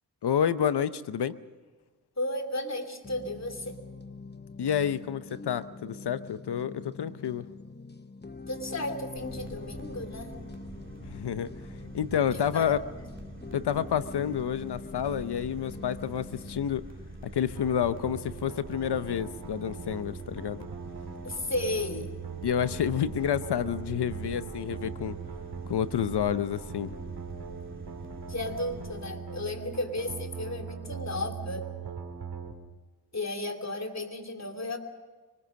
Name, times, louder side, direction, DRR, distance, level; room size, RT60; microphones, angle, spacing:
voice 1, 0.2-1.4 4.6-7.5 11.1-11.5 11.9-12.8 13.5-16.8 17.3-20.6 22.4-25.2 25.7-26.9, left 9 dB, 85° left, 14 dB, 0.8 m, -29 dB
voice 2, 2.2-3.8 8.5-10.3 12.3-12.7 21.2-22.1 28.3-31.7 33.1-34.8, left 2 dB, 40° left, 6 dB, 3.0 m, -34 dB
sound 1, 3.0-16.7, left 3 dB, 25° left, 0.9 m, -44 dB
sound 2, 9.2-29.1, right 2 dB, 30° right, 2.9 m, -45 dB
sound 3, 17.6-32.5, right 6 dB, 80° right, 2.1 m, -41 dB
24.0 x 21.0 x 6.4 m, 1.3 s
cardioid pair, 40°, 39 cm